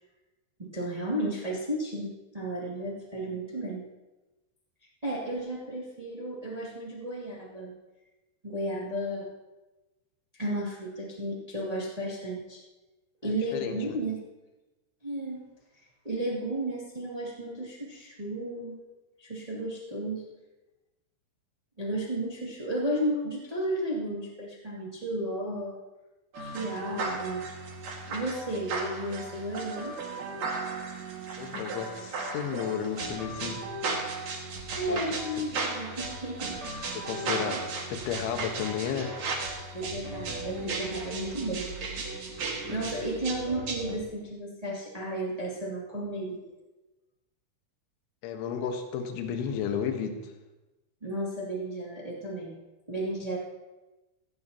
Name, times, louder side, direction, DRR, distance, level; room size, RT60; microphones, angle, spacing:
voice 1, 0.6-3.8 5.0-7.7 8.4-9.3 10.4-12.6 13.2-14.2 15.0-15.4 16.0-18.8 19.2-20.2 21.8-25.8 26.4-27.4 28.1-30.0 34.8-36.6 37.2-37.6 39.7-42.0 42.7-46.5 51.0-52.5 52.9-53.4, right 1 dB, 25° right, -5 dB, 0.7 m, -33 dB
voice 2, 13.2-14.0 31.4-33.6 34.9-35.0 36.9-37.6 37.9-39.2 42.6-42.9 48.2-50.3, left 7 dB, 80° left, 4 dB, 3.6 m, -33 dB
sound 1, 26.3-44.0, right 3 dB, 50° right, 2.3 m, -35 dB
17.5 x 16.0 x 2.9 m, 1.1 s
omnidirectional pair, 5.5 m